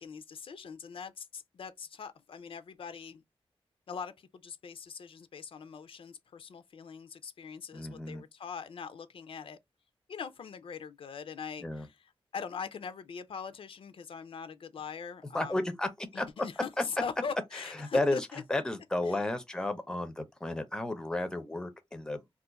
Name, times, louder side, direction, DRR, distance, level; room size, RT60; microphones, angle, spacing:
voice 1, 0.0-3.2 3.9-9.6 10.1-15.6 16.1-18.4 19.1-19.2, left 6 dB, 65° left, 0.4 m, -42 dB
voice 2, 7.7-8.2 11.6-11.9 15.3-16.3 16.8-16.9 17.8-22.2, left 2 dB, 5° left, 0.5 m, -32 dB
2.4 x 2.3 x 3.9 m
wide cardioid pair, 175°, 10 cm